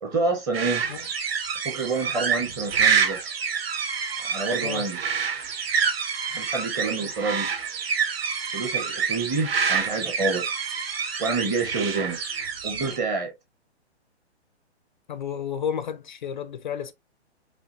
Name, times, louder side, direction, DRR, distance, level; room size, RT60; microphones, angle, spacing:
voice 1, 0.0-0.8 1.6-3.2 4.2-5.0 6.3-7.5 8.5-10.5 11.2-12.2 12.6-13.3, right 3 dB, 10° right, 0.5 m, -28 dB
sound 1, 0.5-13.0, right 6 dB, 60° right, 1.2 m, -27 dB
voice 2, 15.1-16.9, left 8 dB, 45° left, 0.4 m, -31 dB
5.0 x 2.6 x 2.8 m
figure-of-eight pair, 130°, 34 cm